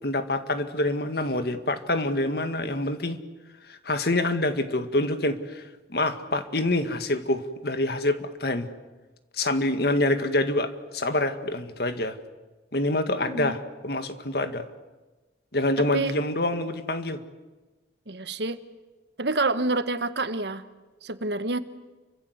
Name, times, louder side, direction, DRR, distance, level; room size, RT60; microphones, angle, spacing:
voice 1, 0.0-3.2 3.7-5.6 5.9-8.7 9.4-12.2 12.7-14.6 15.5-17.2, left 1 dB, 55° left, 9 dB, 2.0 m, -26 dB
voice 2, 18.1-18.6 19.2-20.6 21.0-21.6, right 2 dB, 65° right, 11 dB, 1.4 m, -27 dB
29.5 x 24.5 x 8.2 m, 1.2 s
head